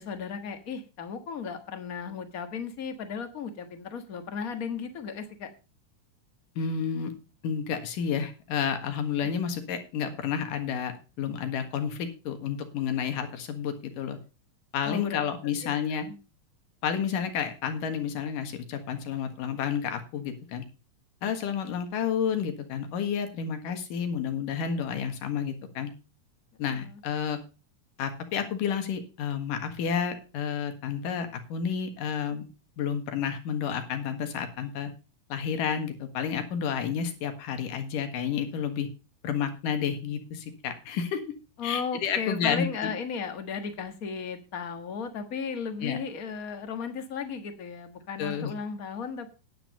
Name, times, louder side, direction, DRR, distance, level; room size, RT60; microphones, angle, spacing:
voice 1, 0.0-5.5 14.8-15.8 16.0-16.2 26.7-27.0 41.6-49.3, left 6 dB, 40° left, 8 dB, 1.2 m, -35 dB
voice 2, 6.6-7.1 7.4-14.2 14.7-16.1 16.8-20.6 21.2-25.9 26.6-27.4 28.0-32.5 32.8-34.9 35.3-38.9 39.2-41.2 41.6-42.9 45.8-46.0 48.2-48.5, left 7 dB, 85° left, 7 dB, 3.3 m, -30 dB
10.0 x 9.5 x 5.4 m, 0.33 s
omnidirectional pair, 3.7 m